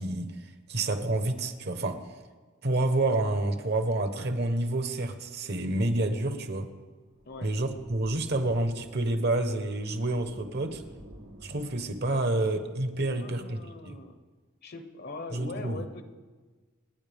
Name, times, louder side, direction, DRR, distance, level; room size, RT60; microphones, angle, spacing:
voice 1, 0.0-2.0 2.6-6.7 7.4-10.8 11.4-14.0 15.3-15.8, right 2 dB, 50° right, 8 dB, 1.1 m, -29 dB
sound 1, 6.8-12.1, right 1 dB, 90° right, 1.5 m, -51 dB
voice 2, 13.1-14.2 14.6-16.0, left 2 dB, 50° left, 8 dB, 1.0 m, -41 dB
28.0 x 9.6 x 3.5 m, 1.4 s
head